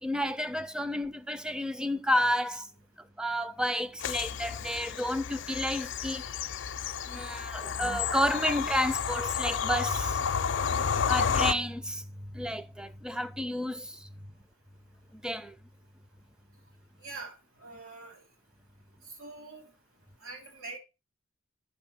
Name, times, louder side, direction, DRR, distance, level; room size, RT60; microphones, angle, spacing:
voice 1, 0.0-2.7 3.2-6.2 7.1-10.2 11.0-12.1 12.3-14.1 15.2-15.5, equal, 5° right, 0.4 m, -31 dB
Bird vocalization bird call bird song / Train, 4.0-11.5, left 7 dB, 55° left, 0.5 m, -31 dB
voice 2, 17.0-18.2 19.2-19.7 20.2-20.8, right 3 dB, 70° right, 2.9 m, -44 dB
8.9 x 5.8 x 4.2 m
head